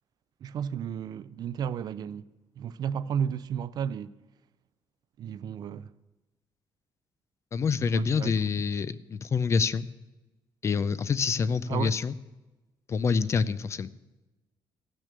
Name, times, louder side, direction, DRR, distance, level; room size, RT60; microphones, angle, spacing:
voice 1, 0.4-2.3 2.6-4.2 5.2-5.9 7.8-8.3 11.7-11.9, right 8 dB, 55° right, 0.4 m, -33 dB
voice 2, 7.5-9.9 10.6-12.1 12.9-13.9, left 5 dB, 35° left, 0.4 m, -27 dB
15.0 x 6.2 x 6.7 m
cardioid pair, 140°, 8 cm